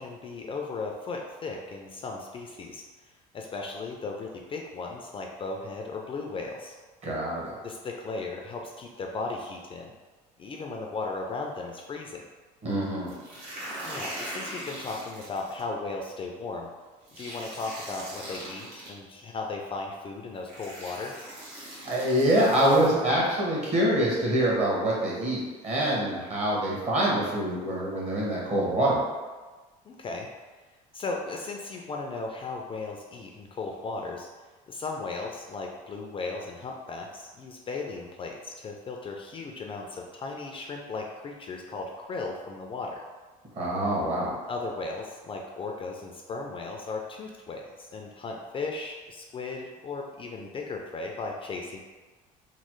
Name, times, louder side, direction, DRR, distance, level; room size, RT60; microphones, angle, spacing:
voice 1, 0.0-2.8 3.3-6.8 7.6-9.9 10.4-12.2 13.8-16.7 17.2-21.2 29.9-30.3 30.9-34.3 34.7-43.0 44.5-51.8, left 3 dB, 30° left, 1 dB, 0.3 m, -36 dB
voice 2, 7.0-7.5 12.6-13.1 21.8-29.0 43.5-44.3, right 1 dB, 40° right, -5 dB, 1.2 m, -25 dB
sound 1, 13.1-15.6 17.1-18.9 19.9-20.0 20.5-22.9, right 1 dB, 75° right, 1.1 m, -40 dB
3.1 x 2.0 x 3.0 m, 1.3 s
supercardioid pair, 85°, 18 cm